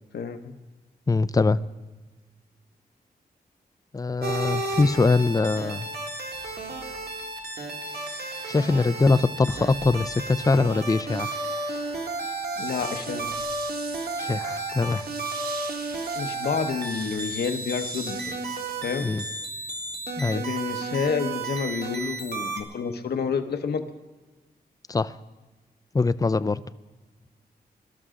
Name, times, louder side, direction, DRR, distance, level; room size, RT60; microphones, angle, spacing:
voice 1, 0.1-0.5 12.6-13.4 16.2-18.3 18.8-19.1 20.3-23.8, left 6 dB, 80° left, 1.0 m, -29 dB
voice 2, 1.1-1.6 3.9-5.9 8.5-11.3 14.2-15.1 19.0-19.2 20.2-20.4 24.9-25.1 25.9-26.6, left 3 dB, 20° left, 0.5 m, -22 dB
sound 1, 4.2-22.6, right 2 dB, 85° right, 2.0 m, -33 dB
Breathing, 6.2-7.2 7.8-10.7 11.0-12.1, right 1 dB, 35° right, 2.4 m, -47 dB
sound 2, 12.2-19.5, right 5 dB, 70° right, 1.2 m, -42 dB
23.0 x 12.5 x 3.7 m
wide cardioid pair, 90°, 16 cm